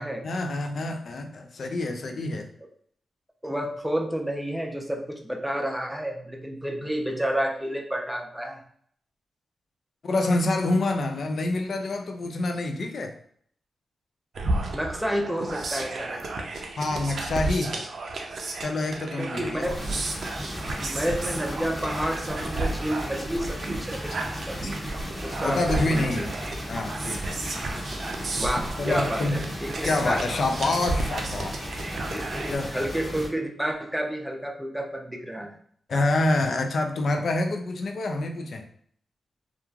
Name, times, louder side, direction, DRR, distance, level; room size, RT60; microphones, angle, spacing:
voice 1, 0.2-2.5 10.0-13.1 16.8-17.8 18.6-19.7 24.6-24.7 25.4-26.3 26.7-27.4 28.8-29.5 29.8-31.9 32.5-32.7 35.9-38.7, left 2 dB, 65° left, 5 dB, 0.4 m, -27 dB
voice 2, 3.4-8.6 14.7-16.2 19.2-20.0 20.6-24.6 25.2-26.2 27.5-27.8 28.4-30.3 32.1-35.6, equal, 5° right, 1 dB, 0.6 m, -30 dB
sound 1, 14.3-32.5, right 2 dB, 65° right, 0.4 m, -33 dB
sound 2, 19.7-33.3, equal, 20° left, 1.2 m, -36 dB
2.9 x 2.4 x 2.3 m, 0.62 s
cardioid pair, 50°, 0 cm